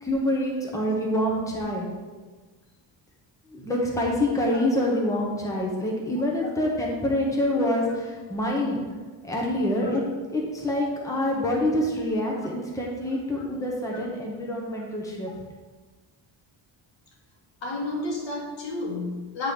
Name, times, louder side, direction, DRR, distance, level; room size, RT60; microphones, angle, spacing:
voice 1, 0.0-1.9 3.5-8.8 9.2-10.0 10.3-15.3, left 1 dB, 5° left, -2 dB, 1.0 m, -26 dB
voice 2, 17.6-19.5, left 2 dB, 75° left, -2 dB, 1.8 m, -31 dB
8.5 x 3.8 x 5.0 m, 1.3 s
wide cardioid pair, 155°, 45 cm